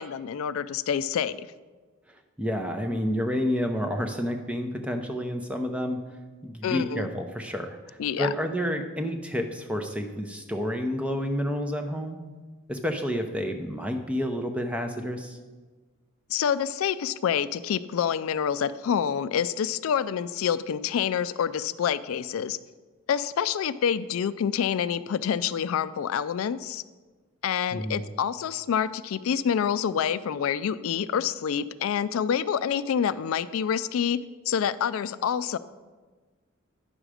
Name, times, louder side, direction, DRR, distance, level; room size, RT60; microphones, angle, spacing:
voice 1, 0.0-1.5 6.6-7.1 8.0-8.3 16.3-22.6 23.1-26.8 27.4-34.2 34.5-35.6, left 8 dB, 80° left, 15 dB, 0.3 m, -27 dB
voice 2, 2.1-6.0 6.4-12.2 12.7-15.4 27.7-28.0, equal, 5° right, 5 dB, 0.6 m, -30 dB
10.0 x 6.3 x 4.9 m, 1.3 s
head